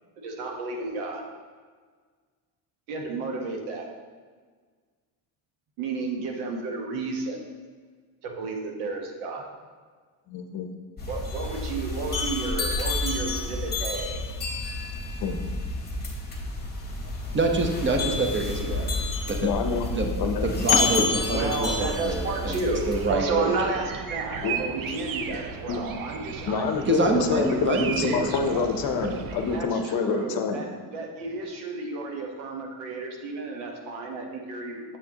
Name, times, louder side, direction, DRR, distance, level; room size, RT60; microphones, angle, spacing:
voice 1, 0.2-1.2 2.9-3.9 5.8-7.4 8.2-9.5 11.1-14.2 21.3-26.7 29.5-35.0, right 3 dB, 85° right, 2 dB, 1.3 m, -32 dB
voice 2, 10.3-10.7 15.2-15.4 19.4-19.9 20.2-20.8 24.4-24.5 25.7-25.8 26.5-30.6, left 5 dB, 45° left, 6 dB, 0.8 m, -27 dB
sound 1, 11.0-23.1, left 3 dB, 20° left, 1.4 m, -29 dB
voice 3, 17.3-18.9 19.3-19.5 19.9-20.1 20.4-22.6 22.9-23.6 26.9-28.7 29.0-29.2, right 2 dB, 25° right, 3 dB, 0.9 m, -26 dB
sound 2, 22.5-29.6, right 6 dB, 45° right, 0.6 m, -36 dB
7.3 x 6.2 x 2.9 m, 1.5 s
supercardioid pair, 95°, 49 cm